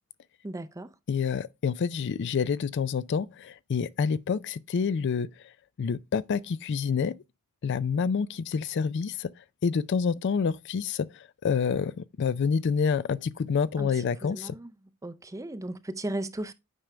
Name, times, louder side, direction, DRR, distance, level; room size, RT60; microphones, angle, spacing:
voice 1, 0.4-0.9 13.8-14.7 15.0-16.5, right 1 dB, 15° right, 0.5 m, -36 dB
voice 2, 1.1-5.3 5.8-7.1 7.6-9.3 9.6-11.1 11.4-14.5, left 6 dB, 55° left, 0.4 m, -27 dB
9.0 x 5.1 x 3.2 m
head